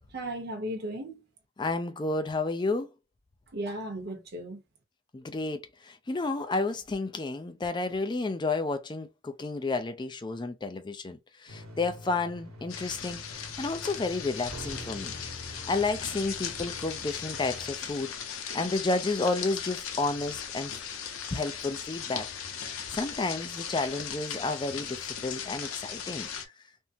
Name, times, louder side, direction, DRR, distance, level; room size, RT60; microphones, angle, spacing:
voice 1, 0.1-1.2 3.5-4.6, right 1 dB, 50° right, 0.8 m, -35 dB
voice 2, 1.6-2.9 5.1-18.1 18.5-20.7 21.3-22.3 22.6-26.5, left 3 dB, 20° left, 0.4 m, -31 dB
sound 1, 11.5-17.8, left 1 dB, 85° right, 1.0 m, -45 dB
sound 2, 12.7-26.5, left 7 dB, 85° left, 0.6 m, -38 dB
3.5 x 2.0 x 2.7 m
head